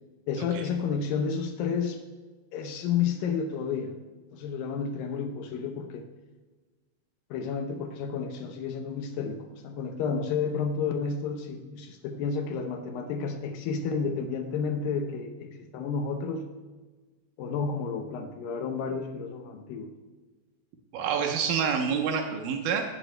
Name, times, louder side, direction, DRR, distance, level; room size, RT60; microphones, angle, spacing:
voice 1, 0.3-2.0 2.5-3.9 4.3-6.1 7.3-16.4 17.4-19.9, left 6 dB, 85° left, 5 dB, 2.0 m, -31 dB
voice 2, 20.9-22.8, right 7 dB, 80° right, 3 dB, 1.9 m, -27 dB
16.0 x 14.5 x 2.2 m, 1.3 s
omnidirectional pair, 5.1 m